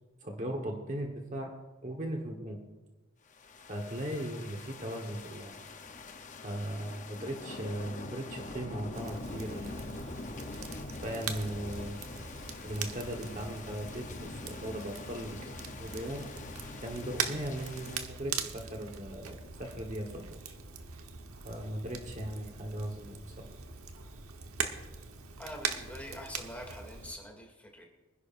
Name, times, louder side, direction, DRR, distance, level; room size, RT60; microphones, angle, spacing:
voice 1, 0.2-1.5 1.8-2.6 3.7-5.5 6.4-9.9 11.0-12.3 12.6-16.2 16.8-20.5 21.4-23.5, right 1 dB, 35° right, 2 dB, 1.2 m, -38 dB
sound 1, 3.3-18.0, left 3 dB, 35° left, 0.7 m, -44 dB
Crackle, 8.9-27.2, right 6 dB, 80° right, 1.1 m, -41 dB
voice 2, 25.4-27.8, equal, 5° left, 0 dB, 2.4 m, -45 dB
24.5 x 10.5 x 2.5 m, 1.2 s
head